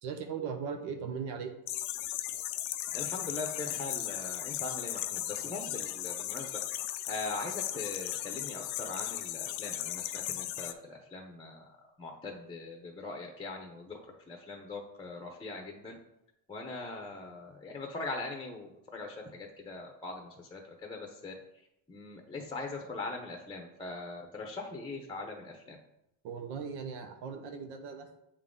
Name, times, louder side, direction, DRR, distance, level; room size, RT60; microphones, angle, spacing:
voice 1, 0.0-1.5 26.2-28.2, right 6 dB, 80° right, 5 dB, 1.0 m, -38 dB
sound 1, 1.7-10.7, left 13 dB, 85° left, 0.6 m, -36 dB
voice 2, 2.9-6.6 7.1-11.7 12.0-14.0 14.3-15.9 16.5-21.3 21.9-25.8, left 3 dB, 15° left, 2 dB, 0.7 m, -41 dB
8.4 x 3.8 x 3.7 m, 0.83 s
cardioid pair, 120°, 39 cm